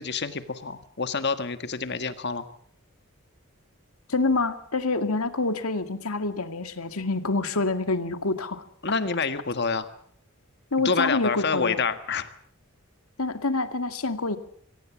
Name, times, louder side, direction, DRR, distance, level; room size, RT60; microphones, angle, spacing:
voice 1, 0.0-2.4 8.8-9.9 10.8-12.3, left 4 dB, 50° left, 10 dB, 1.6 m, -27 dB
voice 2, 4.1-8.6 10.7-11.8 13.2-14.4, left 3 dB, 85° left, 9 dB, 2.1 m, -27 dB
25.5 x 18.5 x 7.2 m, 0.63 s
head